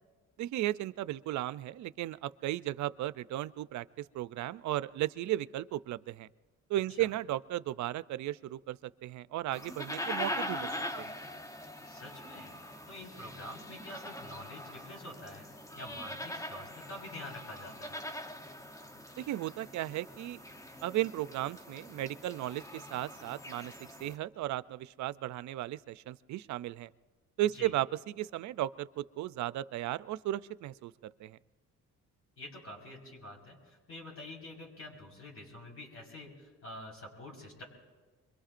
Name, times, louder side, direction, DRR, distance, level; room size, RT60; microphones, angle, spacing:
voice 1, 0.4-6.3 6.7-10.7 11.0-11.1 19.2-20.4 20.8-23.7 24.0-26.9 27.4-27.9 28.2-31.4, right 14 dB, 70° right, 16 dB, 0.5 m, -35 dB
sound 1, 9.5-24.1, left 1 dB, 10° left, 0.9 m, -42 dB
voice 2, 11.9-12.5 12.9-15.5 15.7-18.0 27.5-27.7 32.4-37.6, left 1 dB, 50° left, -2 dB, 4.7 m, -47 dB
25.5 x 22.5 x 2.5 m, 1.3 s
cardioid pair, 90°, 30 cm